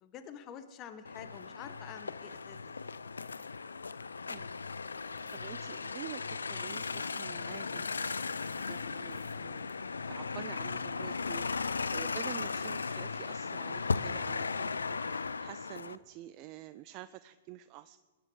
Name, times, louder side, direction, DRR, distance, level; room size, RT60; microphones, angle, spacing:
voice 1, 0.0-3.0, left 8 dB, 35° left, 10 dB, 1.1 m, -48 dB
sound 1, 1.1-16.0, left 4 dB, 85° left, 0.5 m, -37 dB
sound 2, 4.8-12.6, right 1 dB, 5° right, 2.9 m, -62 dB
sound 3, 5.2-5.4 6.7-9.3 9.7-9.8, right 7 dB, 75° right, 1.9 m, -60 dB
voice 2, 5.3-9.7 10.1-18.0, right 15 dB, 40° right, 13 dB, 0.4 m, -48 dB
21.5 x 10.0 x 4.9 m, 1.4 s
hypercardioid pair, 120°, 0 cm